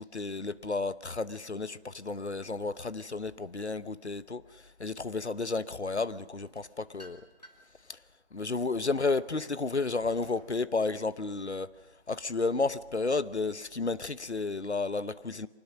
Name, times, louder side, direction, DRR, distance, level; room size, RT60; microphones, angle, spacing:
voice 1, 0.0-7.2 7.9-8.0 8.3-11.7 12.1-15.5, left 3 dB, 80° left, 1.0 m, -32 dB
sound 1, 6.4-7.8 8.3-10.6, equal, 35° left, 1.8 m, -54 dB
24.5 x 20.0 x 6.4 m
figure-of-eight pair, 175°, 33 cm